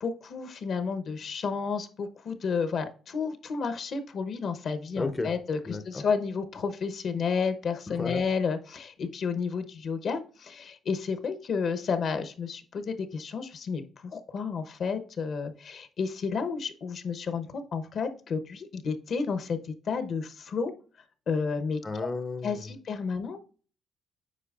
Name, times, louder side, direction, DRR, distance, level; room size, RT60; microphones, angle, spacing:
voice 1, 0.0-20.7 21.3-21.8 22.4-23.4, left 5 dB, 60° left, 9 dB, 0.9 m, -31 dB
voice 2, 5.0-5.3 5.7-6.0 7.9-8.2 21.8-22.6, left 3 dB, 25° left, 9 dB, 0.6 m, -33 dB
8.4 x 5.0 x 2.4 m, 0.40 s
cardioid pair, 90°, 0 cm